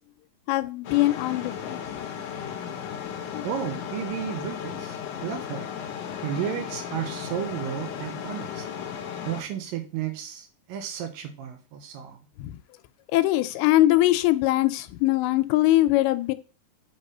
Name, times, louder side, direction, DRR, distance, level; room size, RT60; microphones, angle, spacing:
voice 1, 0.5-1.8 3.3-3.4 12.4-12.5 13.1-16.3, left 16 dB, 85° left, 2.5 m, -22 dB
sound 1, 0.8-9.4, left 8 dB, 70° left, 2.0 m, -35 dB
voice 2, 3.4-5.7 6.2-8.7 9.3-12.2, right 9 dB, 80° right, 2.2 m, -33 dB
5.4 x 3.6 x 5.4 m
omnidirectional pair, 4.4 m